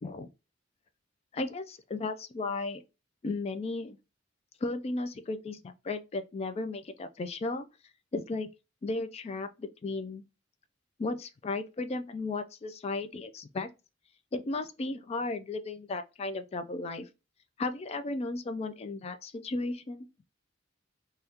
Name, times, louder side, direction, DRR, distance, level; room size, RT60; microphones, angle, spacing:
voice 1, 1.3-2.8 3.2-4.0 4.6-7.6 8.1-8.5 8.8-10.2 11.0-13.7 14.3-17.0 17.6-20.1, left 3 dB, 30° left, 0.3 m, -35 dB
3.4 x 2.3 x 2.7 m
head